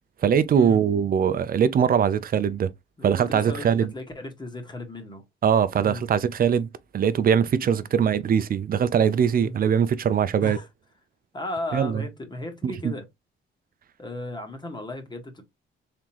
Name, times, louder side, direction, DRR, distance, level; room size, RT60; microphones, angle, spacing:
voice 1, 0.2-2.7 3.0-3.9 5.4-6.7 6.9-10.6 11.7-12.0 12.8-12.9, right 8 dB, 45° right, 0.6 m, -21 dB
voice 2, 3.0-5.2 5.8-6.0 7.6-7.9 9.4-9.6 10.4-10.7 11.3-13.1 14.0-15.4, left 1 dB, 20° left, 1.6 m, -35 dB
3.7 x 3.6 x 3.0 m
cardioid pair, 90°, 20 cm